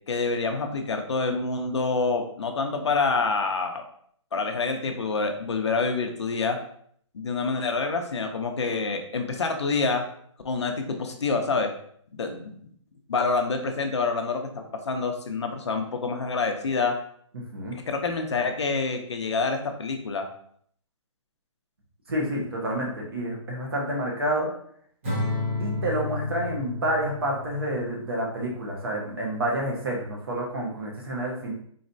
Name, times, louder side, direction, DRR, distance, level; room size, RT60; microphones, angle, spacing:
voice 1, 0.1-3.8 4.3-6.6 7.1-10.1 10.4-11.7 12.2-12.5 13.1-17.0 17.7-20.3, left 4 dB, 55° left, 5 dB, 0.6 m, -27 dB
voice 2, 22.1-24.5 25.6-31.5, right 1 dB, 45° right, -1 dB, 1.1 m, -29 dB
Acoustic guitar / Strum, 25.0-28.4, left 2 dB, 25° right, 0.9 m, -31 dB
4.1 x 3.1 x 2.6 m, 0.63 s
hypercardioid pair, 180°, 17 cm